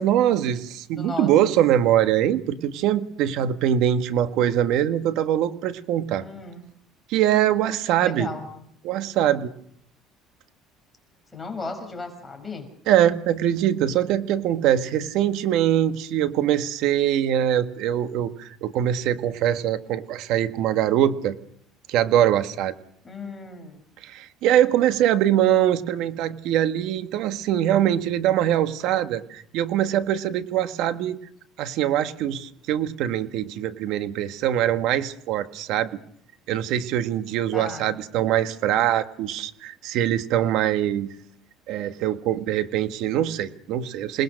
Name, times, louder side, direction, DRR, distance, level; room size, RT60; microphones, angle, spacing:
voice 1, 0.0-6.3 7.1-8.3 8.8-9.5 12.9-21.4 21.9-22.7 24.0-31.2 31.6-35.9 36.5-41.1 41.7-44.2, right 11 dB, 70° right, 10 dB, 1.5 m, -23 dB
voice 2, 0.9-1.3 6.2-6.7 8.0-8.5 11.3-12.7 23.0-23.8 37.5-38.0, left 3 dB, 15° left, 5 dB, 5.9 m, -35 dB
28.0 x 20.0 x 6.5 m, 0.67 s
cardioid pair, 135°, 0 cm